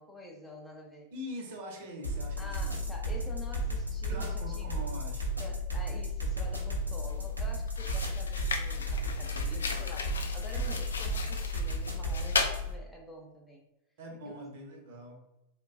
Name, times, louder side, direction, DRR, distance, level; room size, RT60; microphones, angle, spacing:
voice 1, 0.0-1.1 2.4-4.7 5.4-13.6 14.3-14.4, left 1 dB, 5° left, -1 dB, 0.5 m, -48 dB
voice 2, 1.1-2.9 4.1-5.4 14.0-15.2, equal, 55° right, 1 dB, 0.8 m, -43 dB
sound 1, 2.0-12.7, equal, 85° right, 0.6 m, -33 dB
sound 2, 7.1-7.3 7.7-12.6, left 4 dB, 70° left, 0.3 m, -36 dB
3.7 x 2.2 x 2.4 m, 0.95 s
figure-of-eight pair, 90°, 0 cm